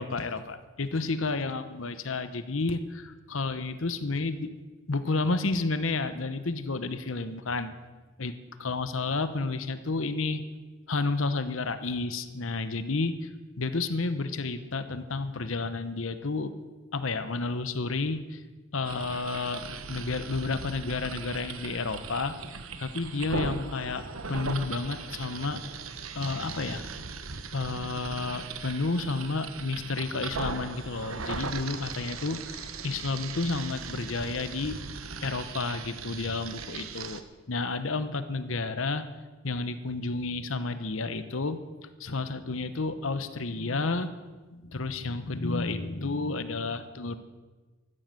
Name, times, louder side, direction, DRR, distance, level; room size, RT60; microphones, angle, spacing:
voice 1, 0.0-4.5 4.9-7.8 8.2-10.4 10.9-16.5 16.9-18.4 18.7-22.4 22.8-24.0 24.3-25.6 26.1-26.8 27.5-34.8 35.2-37.2 37.5-39.0 39.4-41.6 42.0-44.1 44.5-47.2, left 3 dB, 65° left, 11 dB, 1.0 m, -31 dB
sound 1, 18.8-37.2, right 4 dB, 80° right, 1.1 m, -39 dB
15.0 x 12.0 x 7.8 m, 1.3 s
head